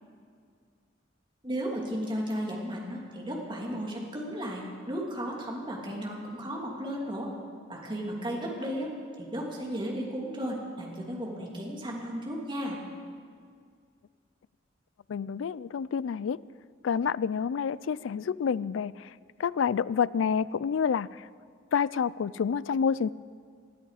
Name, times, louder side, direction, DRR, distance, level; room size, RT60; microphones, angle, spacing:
voice 1, 1.4-7.3 7.7-8.9 9.2-12.8, equal, 25° right, -2 dB, 2.9 m, -34 dB
voice 2, 15.1-16.4 16.8-18.9 19.4-21.1 21.7-23.1, left 6 dB, 75° left, 20 dB, 0.4 m, -28 dB
21.0 x 13.0 x 5.0 m, 2.1 s
head